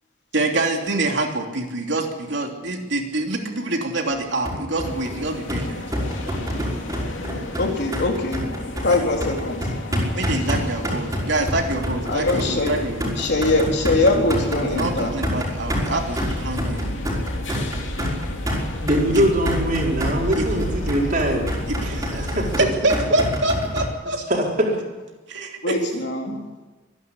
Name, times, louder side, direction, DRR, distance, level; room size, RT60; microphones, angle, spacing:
voice 1, 0.3-5.9 10.1-13.2 14.6-16.9 19.1-19.2 20.3-20.5 21.7-24.2 25.3-25.8, right 2 dB, 65° right, 2 dB, 3.2 m, -26 dB
sound 1, 4.4-23.9, equal, 15° right, 5.5 m, -27 dB
sound 2, 4.8-22.7, left 1 dB, 75° left, 2.8 m, -32 dB
voice 2, 7.6-8.5 8.8-9.6 12.1-12.8 13.2-15.1 25.6-26.4, left 2 dB, 55° left, 1 dB, 4.1 m, -22 dB
voice 3, 18.8-21.5 21.8-22.6 24.3-24.8, equal, 45° right, -1 dB, 4.7 m, -22 dB
25.0 x 11.5 x 9.9 m, 1.2 s
head